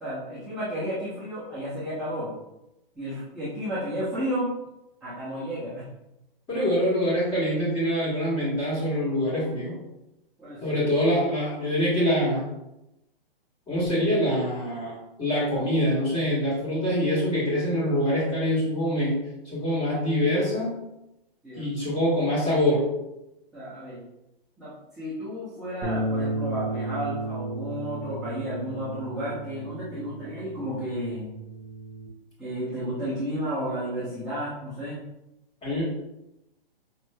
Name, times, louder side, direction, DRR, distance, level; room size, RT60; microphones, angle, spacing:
voice 1, 0.0-2.3 3.0-4.5 5.0-5.8 10.4-10.9 21.4-21.9 23.5-24.0 24.6-31.3 32.4-35.0, equal, ahead, -14 dB, 0.7 m, -32 dB
voice 2, 6.5-9.7 10.6-12.5 13.7-19.2 19.5-20.8 21.6-22.9 35.6-35.8, equal, 20° left, -7 dB, 1.5 m, -25 dB
sound 1, 25.8-32.1, right 2 dB, 45° right, 0.9 m, -34 dB
5.3 x 3.0 x 2.2 m, 0.91 s
hypercardioid pair, 155°, 30 cm